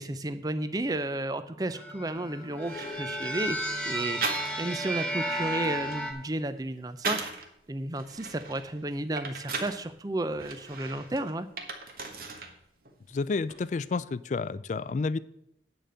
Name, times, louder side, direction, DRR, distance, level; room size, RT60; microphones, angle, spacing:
voice 1, 0.0-11.5, right 2 dB, 20° right, 11 dB, 0.5 m, -33 dB
sound 1, 1.5-6.1, right 1 dB, 5° left, 1.1 m, -33 dB
sound 2, 2.2-2.3 2.6-3.4 4.2-4.8 5.2-7.5 7.9-9.8 10.4-12.5 12.8-13.6, right 4 dB, 55° right, 1.4 m, -38 dB
voice 2, 13.1-15.2, left 4 dB, 45° left, 17 dB, 0.3 m, -30 dB
8.9 x 5.1 x 7.6 m, 0.78 s
head